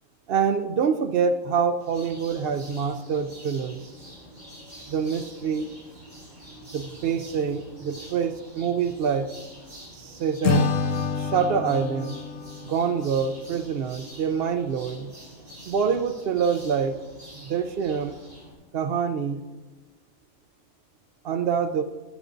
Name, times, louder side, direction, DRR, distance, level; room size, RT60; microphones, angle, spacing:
voice 1, 0.3-3.8 4.9-5.7 6.7-9.3 9.9-10.7 11.2-12.2 12.6-15.1 15.7-17.0 17.4-18.2 18.7-19.4 21.2-21.8, right 6 dB, 60° right, 9 dB, 0.6 m, -26 dB
sound 1, 1.8-18.5, right 1 dB, 45° right, 4.1 m, -46 dB
Acoustic guitar / Strum, 10.4-13.7, left 4 dB, 75° left, 1.1 m, -28 dB
13.5 x 11.0 x 2.6 m, 1.2 s
omnidirectional pair, 1.4 m